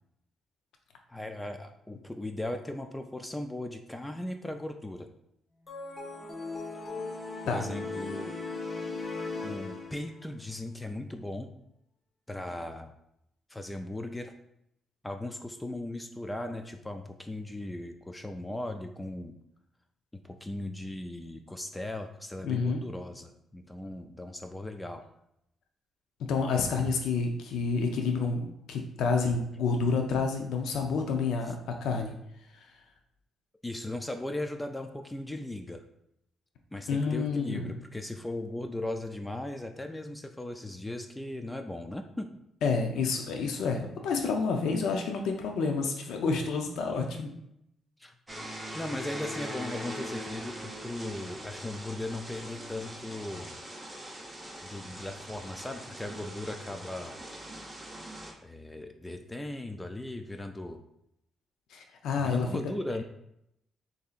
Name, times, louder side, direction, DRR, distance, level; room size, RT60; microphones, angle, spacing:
voice 1, 1.1-5.1 7.4-8.4 9.4-11.5 12.3-12.9 13.5-14.3 15.0-19.3 20.1-25.0 33.6-35.8 36.7-42.4 48.0-48.1 48.6-53.6 54.6-57.1 58.4-60.8 62.2-63.0, left 1 dB, 10° left, 6 dB, 0.3 m, -38 dB
sound 1, 5.7-10.3, left 3 dB, 30° left, 0.8 m, -37 dB
voice 2, 22.4-22.8 26.2-32.1 32.5-32.6 36.9-37.7 42.6-47.3 61.7-62.5, left 4 dB, 85° left, 3 dB, 0.5 m, -29 dB
sound 2, 48.3-58.3, equal, 10° right, 0.8 m, -42 dB
6.7 x 2.7 x 2.4 m, 0.77 s
cardioid pair, 140°, 0 cm